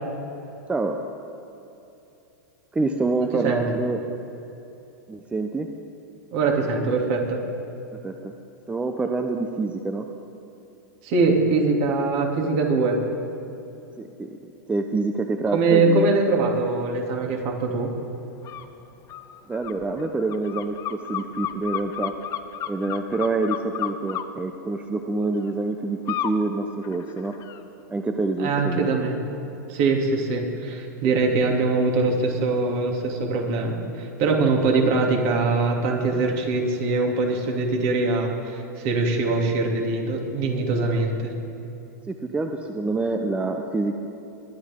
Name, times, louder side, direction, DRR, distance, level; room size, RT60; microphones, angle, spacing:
voice 1, 0.7-1.0 2.7-4.0 5.1-5.7 7.9-8.3 8.7-10.1 14.0-14.4 14.7-16.1 19.5-22.1 22.7-27.4 27.9-28.9 42.1-43.9, right 3 dB, 10° right, 5 dB, 0.7 m, -26 dB
voice 2, 6.3-7.4 11.0-13.0 15.5-17.9 28.4-29.2 29.7-41.3, right 3 dB, 50° right, 1 dB, 2.8 m, -22 dB
sound 1, 18.4-18.7 19.1-24.2 26.1-26.4 26.8-27.6, left 11 dB, 35° left, 0.8 m, -32 dB
21.0 x 11.5 x 3.7 m, 2.9 s
hypercardioid pair, 120°, 10 cm